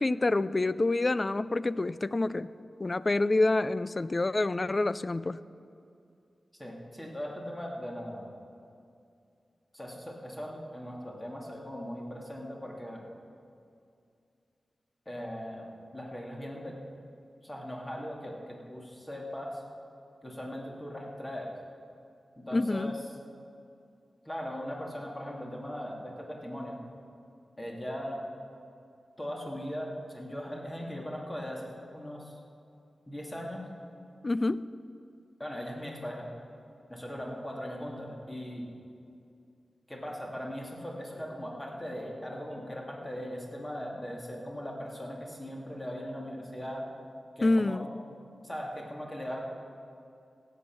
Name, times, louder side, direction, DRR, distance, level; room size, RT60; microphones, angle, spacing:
voice 1, 0.0-2.5 2.8-5.4 22.5-22.9 34.2-34.7 47.4-47.9, left 2 dB, 40° left, 16 dB, 0.4 m, -27 dB
voice 2, 6.6-8.3 9.7-13.1 15.1-16.8 17.4-19.6 20.2-21.5 22.4-23.0 24.2-26.8 27.6-28.2 29.2-32.4 33.1-33.6 35.4-36.3 36.9-38.7 39.9-46.8 47.4-47.8 48.4-49.4, equal, 20° left, -2 dB, 2.7 m, -39 dB
16.5 x 7.9 x 6.4 m, 2.5 s
cardioid pair, 60°, 0 cm